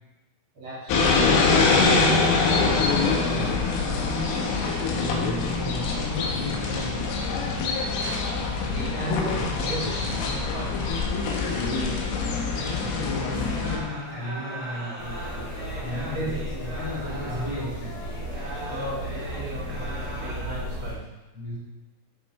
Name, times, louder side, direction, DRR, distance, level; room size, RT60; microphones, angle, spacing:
voice 1, 0.5-0.9 1.5-3.5 7.9-8.2 8.7-10.7 16.1-16.4 18.5-21.0, right 1 dB, 70° right, -7 dB, 1.2 m, -33 dB
sound 1, 0.9-13.8, left 4 dB, 90° left, 4.0 m, -24 dB
voice 2, 5.0-7.0 12.6-16.3 16.6-18.0 20.4-20.7 21.3-21.6, left 1 dB, 5° right, -7 dB, 2.4 m, -35 dB
sound 2, 11.3-20.8, right 2 dB, 40° right, 4.2 m, -40 dB
sound 3, 15.0-20.9, equal, 55° left, 3.8 m, -35 dB
14.5 x 5.4 x 4.3 m, 1.1 s
omnidirectional pair, 5.6 m